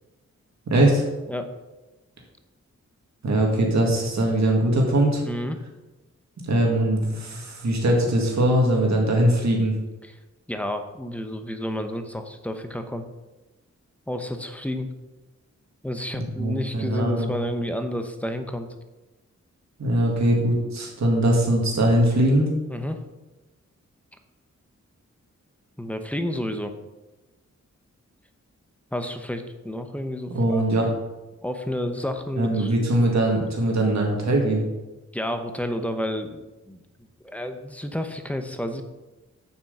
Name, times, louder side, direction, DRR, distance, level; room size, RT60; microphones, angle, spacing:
voice 1, 0.7-1.0 3.2-5.2 6.4-9.7 16.1-17.3 19.8-22.5 30.3-30.9 32.4-34.6, right 1 dB, 65° right, 0 dB, 2.0 m, -21 dB
voice 2, 5.3-5.6 10.0-10.2 10.5-13.1 14.1-14.9 15.8-18.7 22.7-23.0 25.8-26.8 28.9-30.9 31.4-32.7 35.1-36.8 37.2-38.8, left 1 dB, 5° left, 6 dB, 0.8 m, -30 dB
7.2 x 6.1 x 6.9 m, 1.1 s
wide cardioid pair, 135°, 29 cm